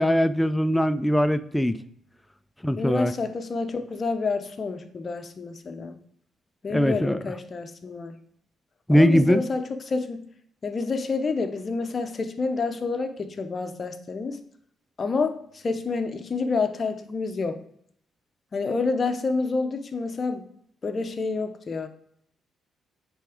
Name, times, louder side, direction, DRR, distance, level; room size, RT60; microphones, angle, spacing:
voice 1, 0.0-1.8 2.6-3.1 6.7-7.2 8.9-9.4, equal, 5° left, 14 dB, 0.4 m, -21 dB
voice 2, 2.8-6.0 6.6-8.2 8.9-10.2 10.6-14.4 15.0-17.6 18.5-20.4 20.8-21.9, left 4 dB, 40° left, 8 dB, 0.8 m, -28 dB
8.2 x 3.5 x 5.0 m, 0.68 s
cardioid pair, 90°, 0 cm